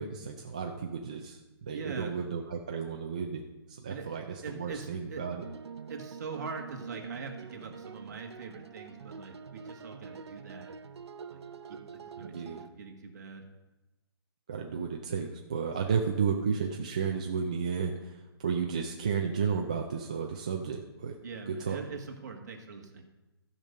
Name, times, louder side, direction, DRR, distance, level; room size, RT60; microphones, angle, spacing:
voice 1, 0.0-3.4 3.7-5.4 12.2-12.6 14.5-21.1 21.5-21.8, right 6 dB, 15° right, 1 dB, 0.3 m, -33 dB
voice 2, 1.7-2.2 3.9-5.3 5.9-10.7 11.3-11.4 11.7-13.5 15.8-16.0 21.2-23.1, right 5 dB, 40° right, 3 dB, 1.5 m, -43 dB
sound 1, 5.3-12.7, right 6 dB, 85° right, 0.6 m, -46 dB
13.5 x 5.2 x 6.5 m, 1.1 s
hypercardioid pair, 175°, 14 cm